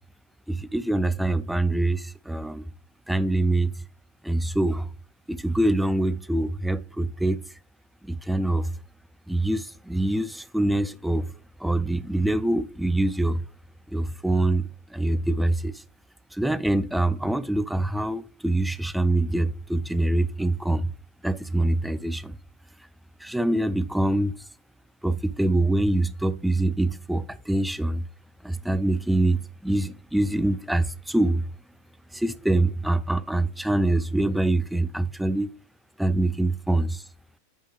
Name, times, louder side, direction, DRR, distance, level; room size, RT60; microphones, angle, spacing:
voice 1, 0.5-2.7 3.1-3.7 4.2-4.9 5.3-7.4 8.0-8.7 9.3-11.3 11.6-13.4 13.9-15.7 16.3-20.9 21.2-22.4 23.2-24.3 25.0-28.0 28.4-31.4 32.1-35.5 36.0-37.0, right 1 dB, ahead, 0.4 m, -24 dB
7.2 x 5.2 x 3.4 m
figure-of-eight pair, 90°, 0 cm